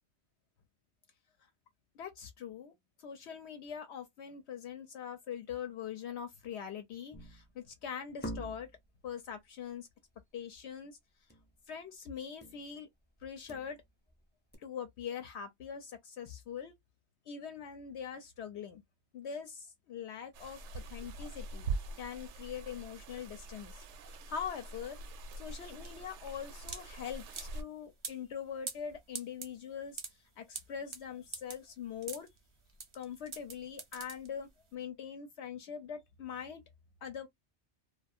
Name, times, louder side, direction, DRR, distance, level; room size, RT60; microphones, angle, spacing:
voice 1, 1.9-2.7 3.0-8.7 9.0-9.9 10.3-11.0 11.7-12.9 13.2-13.8 14.6-16.7 17.3-18.8 19.1-25.0 25.4-32.3 32.9-36.6 37.0-37.3, left 8 dB, 70° left, 0.8 m, -43 dB
sound 1, 7.1-7.6 8.2-8.9 11.3-11.5 11.8-11.9 12.4-12.7 13.2-14.1 14.5-14.6, equal, 10° left, 0.5 m, -45 dB
sound 2, 20.3-27.6, right 3 dB, 80° right, 0.9 m, -43 dB
sound 3, 24.8-34.7, right 4 dB, 40° right, 0.4 m, -46 dB
2.3 x 2.3 x 2.6 m
omnidirectional pair, 1.2 m